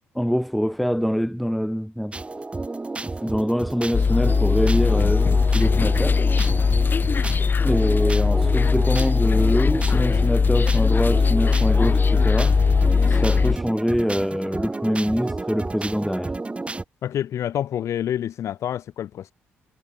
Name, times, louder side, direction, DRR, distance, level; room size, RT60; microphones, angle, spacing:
voice 1, 0.1-2.2 3.2-6.2 7.6-12.6 13.1-16.3, equal, ahead, 1.2 m, -24 dB
sound 1, 2.1-16.8, right 3 dB, 20° right, 0.7 m, -31 dB
sound 2, 3.9-13.6, left 5 dB, 40° left, 0.7 m, -19 dB
voice 2, 17.0-19.3, left 10 dB, 65° left, 1.0 m, -27 dB
supercardioid pair, 55°, 5 cm